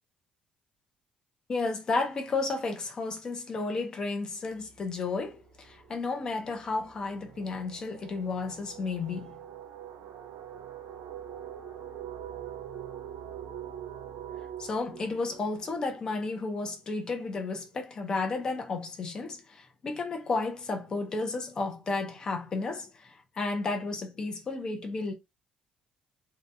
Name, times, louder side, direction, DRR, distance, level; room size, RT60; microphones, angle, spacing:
voice 1, 1.5-9.4 14.6-25.1, left 3 dB, 25° left, 0.5 m, -32 dB
sound 1, 4.6-4.8 5.1-16.7, right 9 dB, 75° right, 0.5 m, -44 dB
2.8 x 2.1 x 2.6 m
cardioid pair, 180°, 3 cm